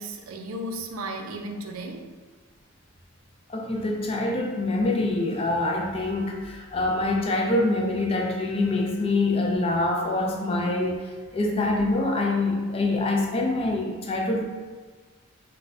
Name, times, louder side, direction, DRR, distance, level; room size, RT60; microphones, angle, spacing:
voice 1, 0.0-2.1, right 1 dB, 85° right, 4 dB, 0.4 m, -34 dB
voice 2, 3.5-11.1 11.3-14.4, left 2 dB, 30° left, 1 dB, 0.3 m, -25 dB
2.5 x 2.2 x 4.0 m, 1.4 s
head